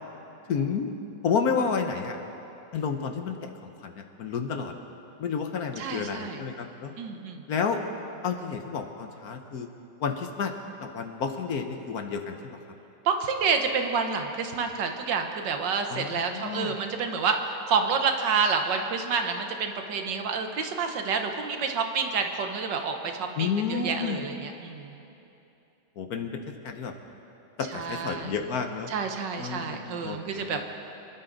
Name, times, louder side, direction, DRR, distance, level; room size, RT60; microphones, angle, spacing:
voice 1, 0.5-0.9 1.2-2.2 2.7-3.5 3.8-3.9 4.2-4.7 5.2-6.9 7.5-7.8 8.2-9.7 10.0-10.5 10.8-12.6 15.9-16.7 23.4-24.2 26.0-26.9 27.6-28.9 29.4-30.7, left 6 dB, 60° left, 5 dB, 1.2 m, -30 dB
voice 2, 5.8-6.4 7.0-7.4 13.0-24.9 27.7-28.3 28.9-30.6, right 5 dB, 75° right, 5 dB, 1.7 m, -28 dB
26.0 x 12.0 x 4.0 m, 2.9 s
omnidirectional pair, 2.0 m